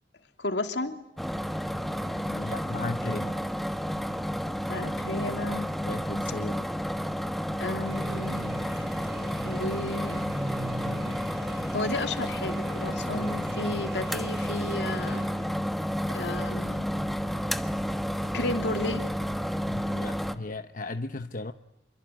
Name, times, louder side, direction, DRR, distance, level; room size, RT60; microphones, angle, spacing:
voice 1, 0.4-1.0 4.7-5.7 7.6-8.6 9.0-9.1 9.4-10.3 10.7-15.2 16.1-17.0 18.3-19.1, left 2 dB, 75° left, 6 dB, 2.9 m, -33 dB
sound 1, 1.2-20.3, equal, ahead, 1.2 m, -31 dB
voice 2, 2.0-3.4 5.8-6.7 19.6-21.5, left 2 dB, 50° left, 9 dB, 1.0 m, -36 dB
sound 2, 7.8-15.6, right 1 dB, 65° right, 3.0 m, -40 dB
27.5 x 23.5 x 9.2 m, 0.84 s
head